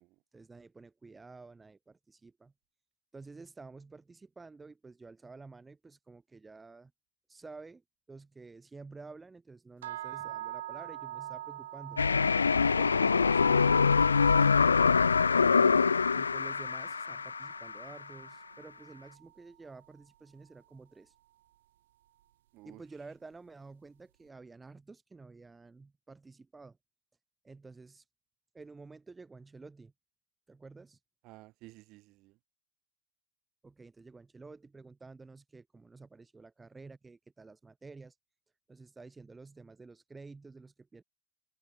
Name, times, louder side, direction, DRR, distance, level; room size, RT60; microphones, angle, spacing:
voice 1, 0.3-2.5 3.1-6.9 7.3-7.8 8.1-12.0 16.1-21.2 22.6-26.8 27.4-28.1 28.5-29.9 30.5-31.0 33.6-38.2 38.7-41.0, right 3 dB, 10° right, 3.4 m, -51 dB
sound 1, 9.8-19.9, right 13 dB, 55° right, 1.1 m, -45 dB
sound 2, 12.0-17.9, left 5 dB, 75° left, 0.4 m, -25 dB
voice 2, 31.2-32.4, right 21 dB, 40° right, 7.1 m, -52 dB
figure-of-eight pair, 90°, 0 cm